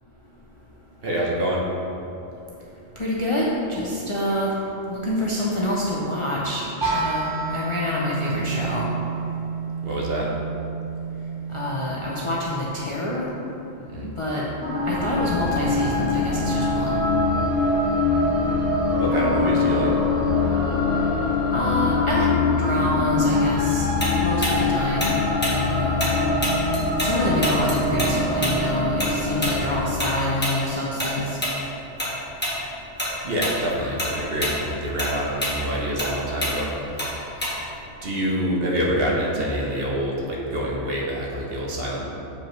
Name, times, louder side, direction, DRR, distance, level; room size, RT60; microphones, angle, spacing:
voice 1, 1.0-1.7 9.8-10.3 13.8-14.1 19.0-20.0 33.2-37.1 38.0-42.0, equal, 50° right, -4 dB, 1.1 m, -26 dB
voice 2, 3.0-4.6 4.9-8.8 11.5-13.3 14.2-14.4 14.9-17.0 21.5-23.9 24.1-25.2 25.5-26.2 27.0-31.4, left 1 dB, 40° left, -5 dB, 0.5 m, -26 dB
sound 1, 6.8-12.6, right 5 dB, 20° right, 0.8 m, -29 dB
sound 2, 14.6-30.8, left 3 dB, 65° left, 2.0 m, -23 dB
Tick-tock, 24.0-27.1 27.4-32.1 32.4-32.6 33.0-33.6 33.9-37.8, equal, 10° left, 1.2 m, -27 dB
7.1 x 5.1 x 3.1 m, 2.8 s
omnidirectional pair, 1.3 m